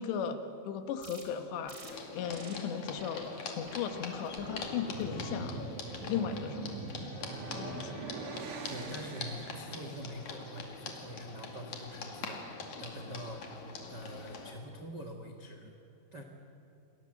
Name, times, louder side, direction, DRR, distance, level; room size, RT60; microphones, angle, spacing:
voice 1, 0.0-5.6 6.1-6.8 7.5-8.1, left 8 dB, 90° left, 7 dB, 3.7 m, -37 dB
sound 1, 1.0-1.2 1.7-1.9 2.3-2.6 3.0-3.2 3.7-3.9 4.4-4.7 5.2-5.5, right 3 dB, 30° right, 3.6 m, -50 dB
sound 2, 1.8-14.5, left 4 dB, 50° left, 3.3 m, -44 dB
sound 3, 4.6-9.9, right 4 dB, 55° right, 1.6 m, -42 dB
voice 2, 8.7-13.4 13.9-15.7 16.1-16.2, equal, 75° right, 3 dB, 0.9 m, -45 dB
28.5 x 21.0 x 7.8 m, 2.9 s
omnidirectional pair, 4.9 m